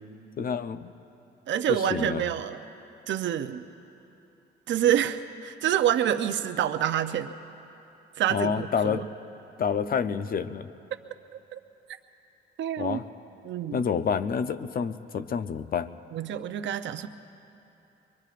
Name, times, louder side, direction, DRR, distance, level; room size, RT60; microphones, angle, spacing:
voice 1, 0.4-0.9 1.7-2.2 8.3-9.1 9.6-10.7 12.8-13.0 13.7-15.9, left 6 dB, 45° left, 11 dB, 0.6 m, -28 dB
voice 2, 1.5-2.6 3.1-3.6 4.7-7.3 8.2-9.1 11.5-11.6 12.6-13.0 13.4-13.8 16.1-17.1, right 10 dB, 70° right, 8 dB, 0.6 m, -27 dB
24.5 x 22.5 x 2.5 m, 2.9 s
cardioid pair, 90°, 20 cm